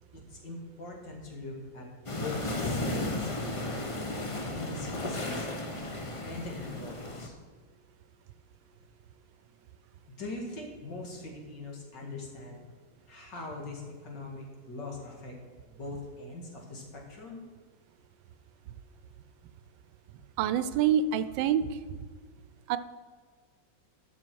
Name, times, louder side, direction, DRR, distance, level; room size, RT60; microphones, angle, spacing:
voice 1, 0.1-3.3 4.3-5.5 6.2-7.3 10.1-12.6 13.1-15.3 15.7-17.4, left 2 dB, 65° left, -1 dB, 2.7 m, -42 dB
sound 1, 2.1-7.3, left 2 dB, 30° left, 0.6 m, -34 dB
voice 2, 20.4-21.8 22.7-22.8, right 8 dB, 85° right, 13 dB, 1.3 m, -26 dB
12.5 x 6.5 x 4.6 m, 1.5 s
omnidirectional pair, 2.0 m